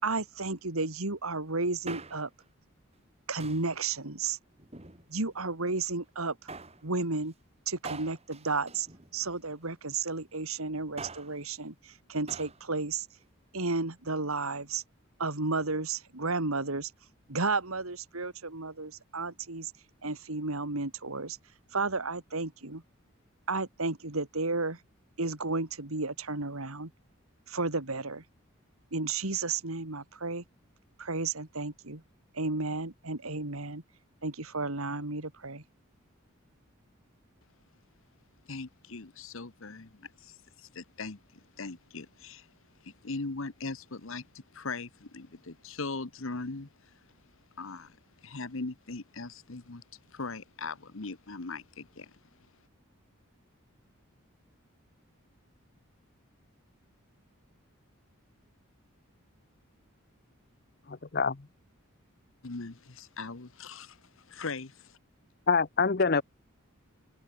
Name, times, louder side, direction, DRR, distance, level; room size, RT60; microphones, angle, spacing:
voice 1, 0.0-2.3 3.3-4.4 5.1-6.4 6.8-7.3 7.7-8.9 9.1-13.1 13.5-14.8 15.2-16.9 17.3-19.7 20.0-21.4 21.7-22.8 23.5-24.8 25.2-26.9 27.5-28.2 28.9-30.4 31.0-32.0 32.3-33.8 34.2-35.6, right 3 dB, 85° right, 2.8 m, -32 dB
Male speech man speaking, 1.6-2.4 3.4-3.8 4.6-5.4 6.5-6.9 7.8-9.5 10.8-11.4 12.3-12.6 12.9-13.0, right 3 dB, 30° right, 2.9 m, -44 dB
voice 2, 38.5-41.2 41.6-42.5 42.8-46.9 47.6-48.0 48.2-49.8 50.1-52.1 62.4-64.0 64.2-65.0, left 3 dB, 70° left, 1.2 m, -40 dB
voice 3, 60.9-61.4 65.5-66.2, left 5 dB, 45° left, 0.8 m, -25 dB
head